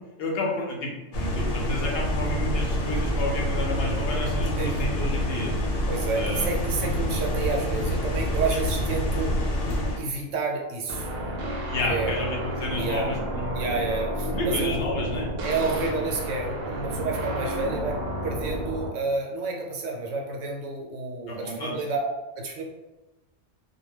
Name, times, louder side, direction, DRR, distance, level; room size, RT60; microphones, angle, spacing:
voice 1, 0.2-5.5 6.1-6.5 11.6-13.7 14.3-15.3 21.3-21.8, left 2 dB, 65° left, -1 dB, 0.7 m, -31 dB
sound 1, 1.1-10.0, equal, 85° left, 1.0 m, -27 dB
voice 2, 5.9-9.4 10.0-11.1 11.9-12.1 12.8-13.1 13.5-14.8 15.4-22.1 22.4-22.6, right 3 dB, 90° right, 1 dB, 0.9 m, -30 dB
sound 2, 10.9-18.9, equal, 65° right, 0.7 m, -31 dB
2.2 x 2.2 x 3.3 m, 1.1 s
omnidirectional pair, 1.2 m